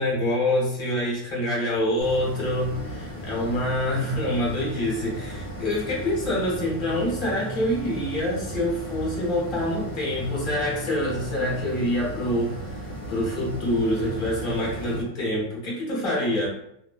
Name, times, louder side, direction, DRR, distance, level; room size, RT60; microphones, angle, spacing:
voice 1, 0.0-12.6 13.1-16.5, left 1 dB, 40° left, -5 dB, 0.9 m, -26 dB
sound 1, 2.0-15.0, right 1 dB, 55° left, 1.3 m, -35 dB
3.1 x 2.1 x 2.2 m, 0.77 s
omnidirectional pair, 1.6 m